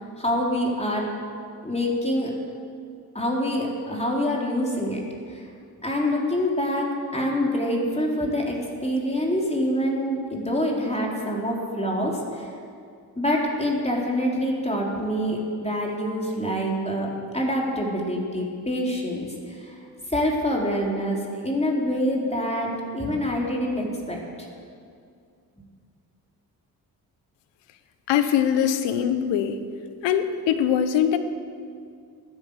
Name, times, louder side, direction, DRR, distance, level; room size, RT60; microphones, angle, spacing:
voice 1, 0.2-1.1 1.6-2.3 3.1-5.0 5.3-5.5 5.8-12.5 13.2-19.8 20.1-24.2, equal, 15° left, -2 dB, 3.8 m, -26 dB
voice 2, 28.1-29.6 30.0-31.2, left 9 dB, 85° left, 10 dB, 1.0 m, -22 dB
14.0 x 9.7 x 8.2 m, 2.3 s
supercardioid pair, 55°, 42 cm